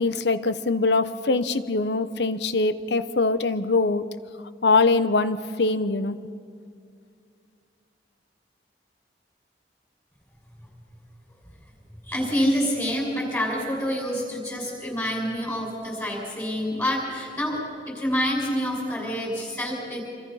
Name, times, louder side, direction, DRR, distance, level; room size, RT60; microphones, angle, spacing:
voice 1, 0.0-4.1 4.6-6.2, left 3 dB, 75° left, 13 dB, 0.9 m, -23 dB
voice 2, 12.0-20.0, equal, 15° left, -1 dB, 6.1 m, -27 dB
26.5 x 25.5 x 5.7 m, 2.3 s
head